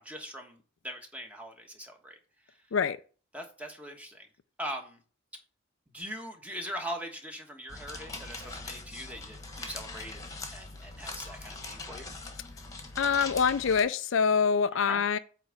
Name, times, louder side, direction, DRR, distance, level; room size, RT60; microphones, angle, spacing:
voice 1, 0.0-2.2 3.3-4.3 4.6-5.0 5.9-12.1 14.8-15.0, equal, 5° right, 1.3 m, -41 dB
sound 1, 7.7-13.8, left 3 dB, 15° left, 1.3 m, -42 dB
voice 2, 13.0-15.2, left 6 dB, 65° left, 0.4 m, -25 dB
8.8 x 3.4 x 6.4 m
head